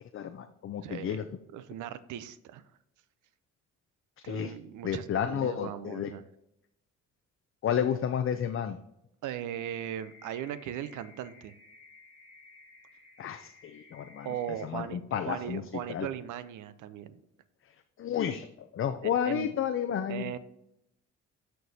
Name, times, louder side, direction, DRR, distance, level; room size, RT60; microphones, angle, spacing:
voice 1, 0.1-1.2 4.3-4.5 4.8-6.1 7.6-8.8 13.2-14.3 14.6-15.6 15.9-16.1 18.0-20.3, left 8 dB, 45° left, 7 dB, 0.5 m, -31 dB
voice 2, 0.8-1.2 1.5-2.6 4.2-6.2 9.2-11.5 14.2-15.0 15.3-17.2 19.0-19.5 20.1-20.4, right 10 dB, 80° right, 14 dB, 0.6 m, -38 dB
sound 1, 9.6-14.6, left 4 dB, 20° left, 2.0 m, -55 dB
12.5 x 4.6 x 2.7 m, 0.84 s
cardioid pair, 90°, 30 cm